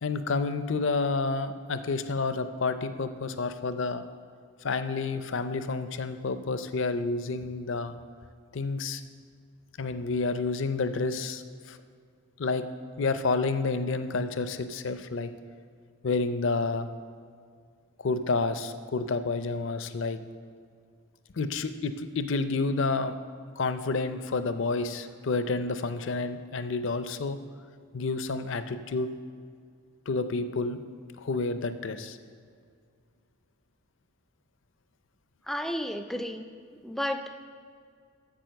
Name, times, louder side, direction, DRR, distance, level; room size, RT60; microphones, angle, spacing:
voice 1, 0.0-4.0 4.6-7.9 8.5-9.0 9.8-11.8 12.4-12.6 13.0-15.3 16.0-16.9 18.0-20.2 21.4-23.2 23.6-27.4 27.9-29.1 30.1-30.8 31.2-32.2, left 3 dB, 60° left, 11 dB, 0.5 m, -29 dB
voice 2, 35.5-36.5 36.8-37.5, equal, ahead, 8 dB, 0.3 m, -32 dB
9.0 x 7.2 x 6.4 m, 2.2 s
head